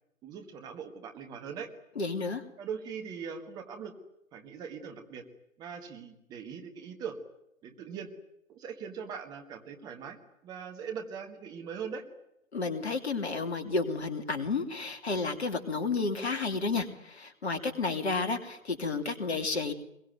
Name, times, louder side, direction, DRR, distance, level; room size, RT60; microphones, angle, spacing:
voice 1, 0.2-1.7 2.6-3.9 4.3-5.3 5.6-7.2 7.6-8.1 8.5-10.2 10.4-12.0, right 6 dB, 10° right, 5 dB, 1.4 m, -41 dB
voice 2, 2.0-2.4 12.5-19.7, left 4 dB, 50° left, 8 dB, 3.1 m, -31 dB
23.5 x 22.0 x 9.4 m, 0.79 s
figure-of-eight pair, 135°, 40 cm